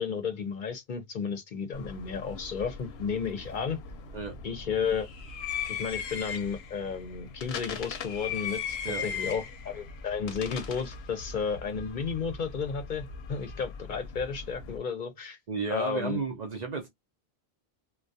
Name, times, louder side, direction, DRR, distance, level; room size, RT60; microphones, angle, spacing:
voice 1, 0.0-3.8 4.4-5.1 5.7-8.8 9.0-15.4 15.7-16.2, left 6 dB, 55° left, 0.7 m, -33 dB
sound 1, 1.7-14.8, left 6 dB, 85° left, 0.8 m, -39 dB
voice 2, 15.5-16.9, right 4 dB, 55° right, 0.6 m, -32 dB
2.3 x 2.1 x 2.6 m
omnidirectional pair, 1.0 m